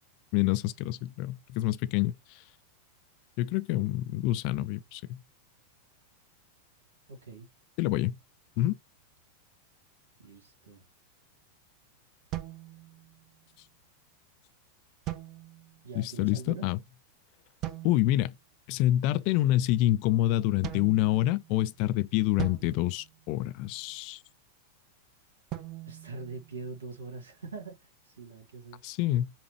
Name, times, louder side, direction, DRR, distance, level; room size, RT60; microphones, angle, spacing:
voice 1, 0.3-2.4 3.4-5.2 7.8-8.2 8.6-8.7 15.9-16.8 17.8-18.3 18.7-24.2 28.8-29.3, left 15 dB, 45° left, 0.4 m, -27 dB
voice 2, 7.1-7.5 10.2-10.8 15.8-16.7 25.9-28.8, right 3 dB, 70° right, 1.9 m, -43 dB
Rubber Band Twangs, 12.3-13.4 15.1-15.9 17.6-18.3 20.6-21.7 22.4-23.9 25.5-27.0, right 14 dB, 35° right, 0.7 m, -41 dB
7.0 x 2.4 x 3.0 m
figure-of-eight pair, 90°, 0 cm